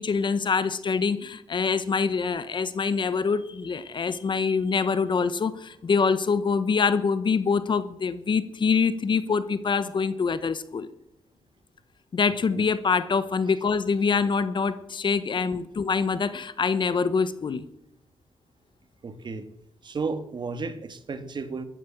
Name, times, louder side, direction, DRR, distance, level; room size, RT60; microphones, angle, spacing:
voice 1, 0.0-10.9 12.1-17.7, left 5 dB, 50° left, 14 dB, 1.2 m, -25 dB
voice 2, 15.3-15.7 19.0-19.5 19.8-21.6, right 4 dB, 50° right, 10 dB, 1.9 m, -33 dB
14.5 x 12.0 x 7.4 m, 0.80 s
cardioid pair, 80°, 10 cm